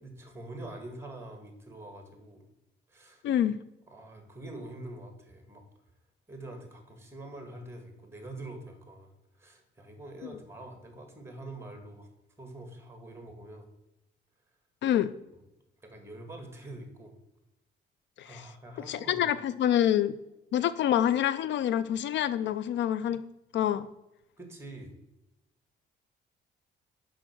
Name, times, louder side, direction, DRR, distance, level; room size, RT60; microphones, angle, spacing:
voice 1, 0.0-2.5 2.9-3.2 3.9-5.6 6.3-12.1 12.4-13.7 15.8-17.1 18.2-19.3 24.4-25.0, right 2 dB, 10° right, 5 dB, 2.2 m, -45 dB
voice 2, 3.2-3.6 10.2-10.3 14.8-15.1 18.2-18.4 18.9-20.2 20.5-23.2 23.5-23.9, left 10 dB, 70° left, 16 dB, 0.4 m, -27 dB
6.2 x 5.7 x 6.1 m, 0.92 s
cardioid pair, 90°, 20 cm